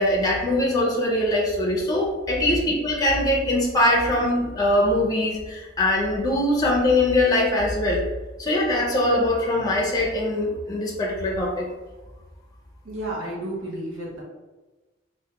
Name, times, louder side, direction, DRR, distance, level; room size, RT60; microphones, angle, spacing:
voice 1, 0.0-8.1 8.4-11.7, left 1 dB, 20° left, -2 dB, 0.4 m, -22 dB
voice 2, 12.8-14.2, right 1 dB, 80° right, -4 dB, 0.8 m, -32 dB
3.3 x 2.1 x 2.8 m, 1.2 s
head